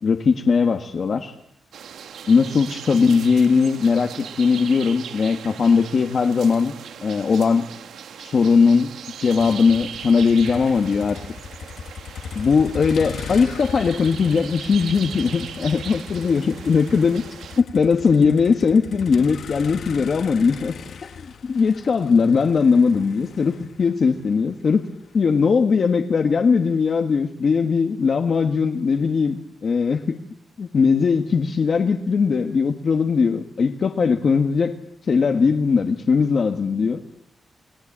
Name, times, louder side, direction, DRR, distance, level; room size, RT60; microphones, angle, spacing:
voice 1, 0.0-1.3 2.3-6.7 7.0-7.7 8.2-8.9 9.2-11.2 12.3-17.2 17.6-20.7 21.0-24.9 25.1-30.2 30.6-34.7 35.0-37.0, left 5 dB, 40° left, 5 dB, 1.6 m, -19 dB
sound 1, 1.7-17.6, right 8 dB, 85° right, 1.9 m, -39 dB
Motor vehicle (road), 9.4-25.5, left 6 dB, 60° left, 1.4 m, -38 dB
30.0 x 22.0 x 8.8 m, 0.77 s
wide cardioid pair, 170°, 0 cm